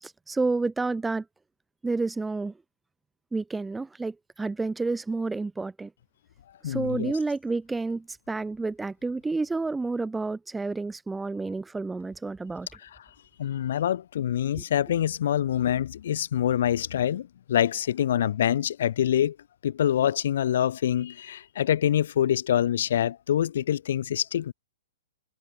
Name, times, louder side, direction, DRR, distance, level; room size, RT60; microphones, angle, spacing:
voice 1, 0.0-1.2 1.8-2.5 3.3-5.9 6.6-12.7 14.5-14.6, right 3 dB, 5° right, 1.0 m, -30 dB
voice 2, 6.6-7.1 13.4-19.3 19.6-24.5, left 10 dB, 60° left, 1.6 m, -25 dB
hypercardioid pair, 165°, 0 cm